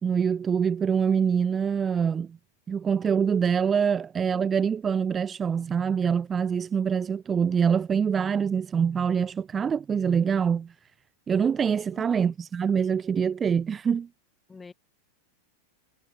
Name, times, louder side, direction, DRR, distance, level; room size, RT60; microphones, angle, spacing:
voice 1, 0.0-2.4 2.7-10.7 11.3-14.1, right 7 dB, 20° right, 0.7 m, -25 dB
voice 2, 11.9-12.3 14.5-14.7, left 4 dB, 15° left, 4.1 m, -46 dB
figure-of-eight pair, 90°, 0 cm